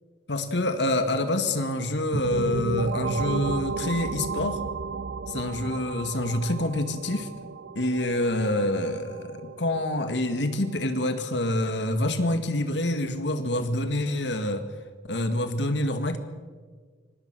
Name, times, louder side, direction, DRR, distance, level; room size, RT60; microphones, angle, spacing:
voice 1, 0.3-4.6 5.3-7.3 7.8-14.6 15.1-16.2, left 1 dB, 80° left, 8 dB, 2.0 m, -27 dB
sound 1, 2.1-11.7, right 4 dB, 70° right, 0.6 m, -34 dB
25.5 x 21.5 x 6.3 m, 1.5 s
head